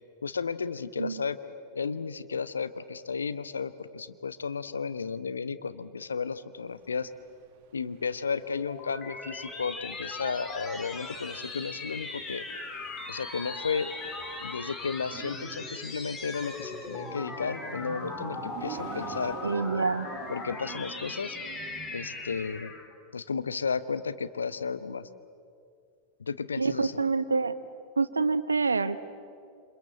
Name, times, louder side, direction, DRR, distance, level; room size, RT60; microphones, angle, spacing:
voice 1, 0.2-1.4 1.7-7.1 7.7-12.6 13.1-13.9 14.4-19.4 20.3-21.4 21.9-22.7 23.1-25.1 26.2-26.9, left 5 dB, 75° left, 12 dB, 1.1 m, -33 dB
sound 1, 6.8-22.6, right 10 dB, 45° right, 1.8 m, -48 dB
sound 2, 8.3-22.9, left 3 dB, 20° left, 3.2 m, -39 dB
voice 2, 19.4-20.1 26.6-27.6 28.0-29.0, right 4 dB, 75° right, 13 dB, 1.1 m, -27 dB
28.0 x 26.5 x 7.7 m, 2.4 s
figure-of-eight pair, 90°, 0 cm